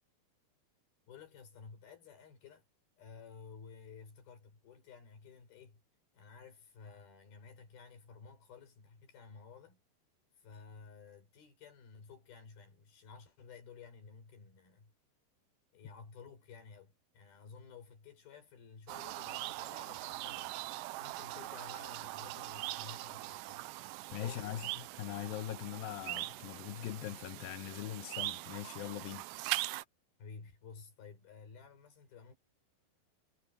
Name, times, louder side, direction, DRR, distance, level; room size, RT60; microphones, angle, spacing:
voice 1, 1.1-2.7 3.0-5.8 6.1-9.8 10.4-14.9 15.7-20.6 21.0-23.7 24.1-24.6 30.2-32.4, left 5 dB, 60° left, 6.4 m, -54 dB
sound 1, 18.9-29.8, right 18 dB, 85° right, 2.8 m, -41 dB
voice 2, 24.1-24.7 25.0-29.3, left 13 dB, 75° left, 2.2 m, -41 dB
omnidirectional pair, 5.0 m